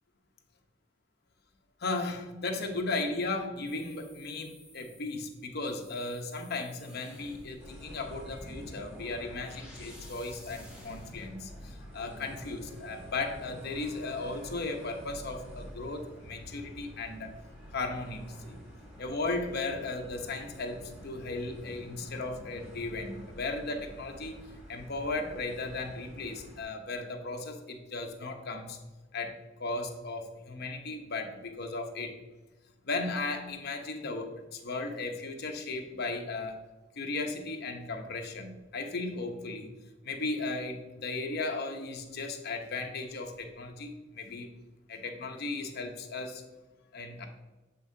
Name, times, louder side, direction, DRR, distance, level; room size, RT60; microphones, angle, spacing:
voice 1, 1.8-17.3 17.7-18.6 19.0-24.4 24.7-28.8 29.1-32.2 32.8-36.6 36.9-39.7 40.0-44.5 44.9-46.4 46.9-47.3, left 3 dB, 55° left, 4 dB, 0.9 m, -36 dB
sound 1, 3.6-11.3, left 1 dB, 5° right, 1.6 m, -52 dB
sound 2, 7.6-26.6, equal, 35° right, 2.2 m, -48 dB
7.5 x 5.5 x 2.7 m, 1.1 s
head